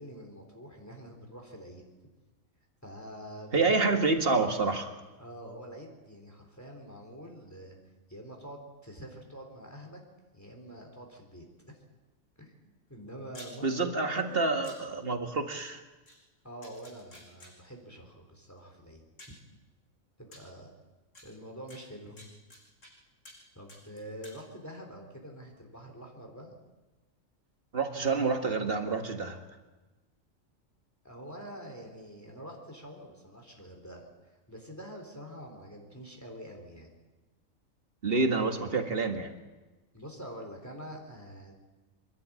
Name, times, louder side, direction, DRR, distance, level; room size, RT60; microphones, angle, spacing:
voice 1, 0.0-1.9 2.8-4.1 5.2-7.8 8.1-10.0 10.3-11.8 12.4-12.5 12.9-14.4 16.4-19.3 20.2-20.7 21.2-22.2 23.6-26.5 31.0-34.1 34.5-36.9 39.9-41.5, equal, 10° left, 1 dB, 3.7 m, -46 dB
voice 2, 3.5-4.9 13.6-15.8 27.7-29.4 38.0-39.3, right 3 dB, 45° right, 5 dB, 2.0 m, -28 dB
sound 1, 13.3-13.5 14.6-14.8 16.1-16.2 16.6-17.5 18.6-18.7 19.2-19.4 20.3-20.4 21.1-21.2 21.7-22.9 23.2-23.4 23.7-24.4, left 1 dB, 70° left, 5.8 m, -50 dB
27.0 x 12.0 x 8.8 m, 1.2 s
omnidirectional pair, 1.4 m